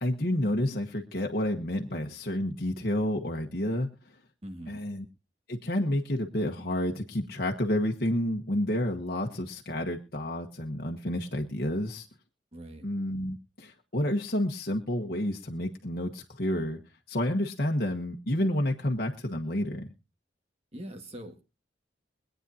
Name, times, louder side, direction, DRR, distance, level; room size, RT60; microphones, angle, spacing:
voice 1, 0.0-3.9 4.7-5.0 5.5-12.1 12.8-16.8 17.1-19.9, left 1 dB, 55° left, 1 dB, 1.3 m, -30 dB
voice 2, 4.4-4.9 12.5-12.9 20.7-21.4, right 1 dB, 35° right, 5 dB, 1.8 m, -42 dB
24.0 x 9.1 x 2.8 m, 0.30 s
head